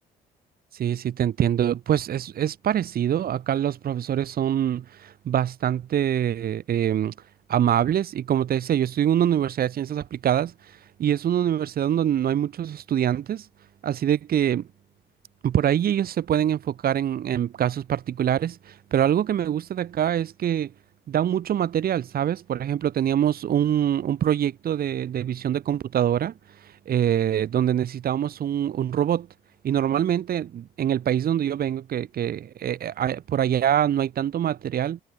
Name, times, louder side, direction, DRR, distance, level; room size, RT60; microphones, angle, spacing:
voice 1, 0.7-7.1 7.5-13.5 13.8-14.7 15.4-20.7 21.1-26.3 26.6-29.3 29.6-35.0, right 10 dB, 60° right, 2.2 m, -24 dB
cardioid pair, 95°, 18 cm